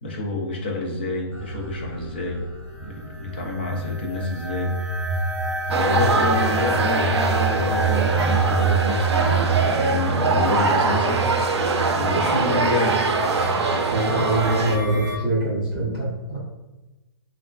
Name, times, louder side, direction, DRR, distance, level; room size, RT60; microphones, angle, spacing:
voice 1, 0.0-2.5 2.8-4.7 5.7-11.3 11.9-13.0, left 2 dB, 25° left, 0 dB, 0.3 m, -28 dB
sound 1, 1.3-15.2, right 3 dB, 45° right, 0.7 m, -27 dB
sound 2, 5.7-14.8, right 3 dB, 80° right, 0.5 m, -23 dB
voice 2, 13.9-16.4, right 2 dB, 5° right, -14 dB, 1.2 m, -25 dB
3.0 x 2.4 x 2.3 m, 1.1 s
hypercardioid pair, 175°, 14 cm